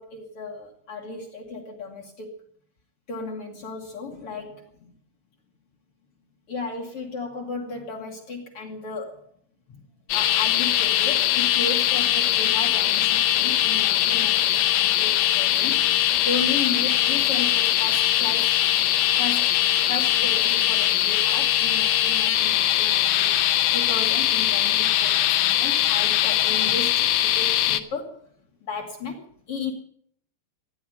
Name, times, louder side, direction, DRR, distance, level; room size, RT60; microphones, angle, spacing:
voice 1, 0.0-2.4 3.1-4.9 6.5-9.3 9.7-9.8 10.1-18.6 19.2-19.5 19.9-23.4 23.7-28.2 28.6-29.7, left 3 dB, 60° left, 2 dB, 1.5 m, -34 dB
sound 1, 10.1-27.8, left 12 dB, 80° left, 2.2 m, -21 dB
14.0 x 10.0 x 9.1 m, 0.64 s
omnidirectional pair, 5.2 m